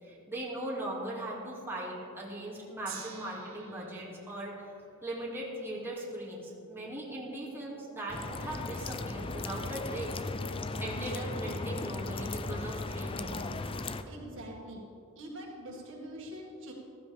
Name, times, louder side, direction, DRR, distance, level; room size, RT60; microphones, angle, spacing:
voice 1, 0.0-4.7 5.0-10.2 10.8-13.4, right 1 dB, 10° right, -5 dB, 2.4 m, -39 dB
Gong, 2.9-9.2 10.0-10.1, right 8 dB, 90° right, 2.1 m, -53 dB
sound 1, 8.1-14.0, left 2 dB, 25° left, 0.5 m, -36 dB
voice 2, 14.1-14.8 15.2-16.7, equal, 65° right, -2 dB, 2.1 m, -44 dB
15.0 x 14.5 x 3.5 m, 2.6 s
head